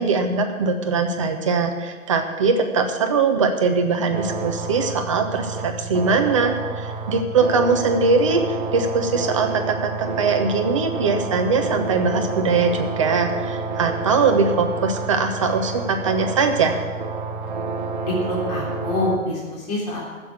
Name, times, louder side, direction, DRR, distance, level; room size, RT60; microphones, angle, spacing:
voice 1, 0.0-16.8, right 4 dB, 25° right, 5 dB, 1.0 m, -21 dB
sound 1, 4.1-19.2, right 3 dB, 40° right, 1.3 m, -29 dB
voice 2, 18.0-20.0, left 1 dB, 30° left, -5 dB, 3.5 m, -25 dB
14.5 x 7.2 x 8.4 m, 1.4 s
figure-of-eight pair, 140°, 41 cm